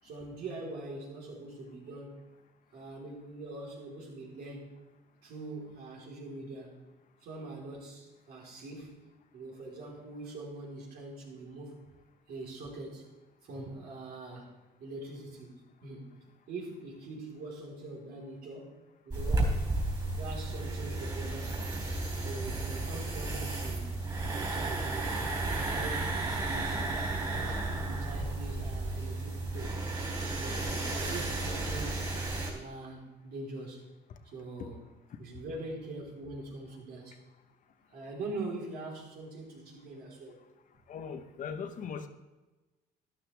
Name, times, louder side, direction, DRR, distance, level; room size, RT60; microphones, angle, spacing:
voice 1, 0.0-2.3 2.7-4.7 5.2-6.7 7.2-9.0 9.3-11.8 12.3-13.0 13.4-14.5 14.8-16.1 16.5-18.8 19.0-19.6 20.2-21.7 22.2-24.0 24.3-26.9 27.2-29.8 30.4-32.1 32.5-33.8 34.2-34.8 35.2-37.2 37.9-40.4, right 2 dB, 65° right, -3 dB, 4.1 m, -43 dB
sound 1, 19.1-32.5, right 2 dB, 25° right, 3.7 m, -33 dB
voice 2, 40.9-42.1, left 6 dB, 50° left, 8 dB, 1.0 m, -39 dB
12.5 x 12.0 x 3.4 m, 1.1 s
cardioid pair, 110°, 17 cm